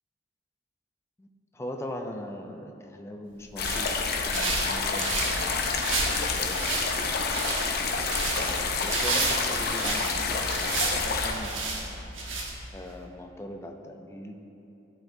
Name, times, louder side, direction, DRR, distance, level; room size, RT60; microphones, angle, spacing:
voice 1, 1.5-3.9 4.3-6.7 8.4-11.5 12.7-14.4, equal, 15° left, 3 dB, 0.5 m, -40 dB
sound 1, 3.4-12.9, right 3 dB, 90° right, 1.1 m, -32 dB
sound 2, 3.6-11.3, left 4 dB, 55° left, 0.7 m, -29 dB
14.0 x 4.7 x 2.6 m, 2.9 s
head